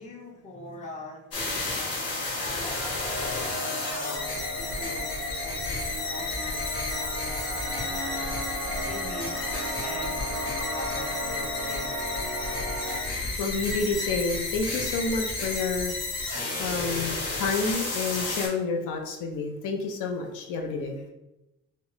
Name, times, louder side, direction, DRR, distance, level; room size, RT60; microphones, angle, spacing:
voice 1, 0.0-5.2 5.4-7.6 7.9-10.3 10.7-11.9 21.0-21.1, left 2 dB, 20° left, 0 dB, 0.6 m, -43 dB
sound 1, 1.3-18.5, left 2 dB, 50° left, 1.5 m, -32 dB
sound 2, 2.6-13.0, equal, 80° right, 0.7 m, -35 dB
voice 2, 13.4-15.9 16.6-21.0, left 4 dB, 70° left, 3 dB, 0.6 m, -29 dB
4.1 x 2.1 x 3.0 m, 0.93 s
cardioid pair, 140°, 32 cm